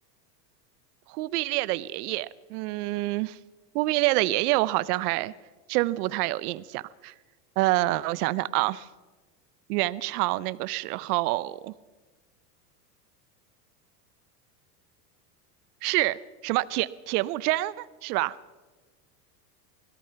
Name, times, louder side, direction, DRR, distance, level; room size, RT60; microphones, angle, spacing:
voice 1, 1.1-3.4 3.7-5.3 5.7-7.1 7.6-8.9 9.7-11.7 15.8-16.2 16.4-18.4, right 19 dB, 65° right, 17 dB, 0.9 m, -27 dB
25.0 x 18.0 x 5.8 m, 1.3 s
supercardioid pair, 110°, 50 cm